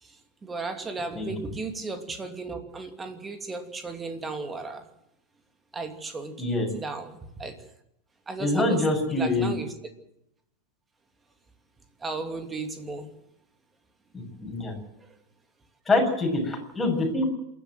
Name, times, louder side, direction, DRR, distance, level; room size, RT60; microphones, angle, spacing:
voice 1, 0.0-4.9 5.7-6.4 6.7-7.6 8.3-9.7 12.0-13.1 15.0-15.1, right 3 dB, 15° right, 2.8 m, -35 dB
voice 2, 6.4-6.7 8.4-9.6 14.4-14.7 15.9-17.3, left 2 dB, 10° left, 7.1 m, -25 dB
28.0 x 12.0 x 7.9 m
figure-of-eight pair, 90°, 0 cm